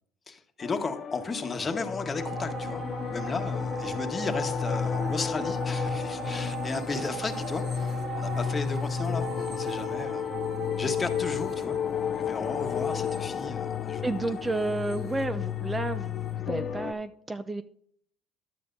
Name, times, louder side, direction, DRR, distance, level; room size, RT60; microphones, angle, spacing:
voice 1, 0.3-2.8 3.1-10.2 10.8-11.8 12.0-14.1, left 4 dB, 30° left, 6 dB, 1.2 m, -34 dB
sound 1, 0.6-16.9, left 7 dB, 45° left, 0.5 m, -32 dB
sound 2, 2.2-15.9 16.3-16.4, right 6 dB, 55° right, 2.6 m, -40 dB
voice 2, 14.0-17.6, right 2 dB, 15° right, 12 dB, 0.4 m, -31 dB
11.5 x 8.7 x 2.6 m, 0.66 s
supercardioid pair, 100°, 0 cm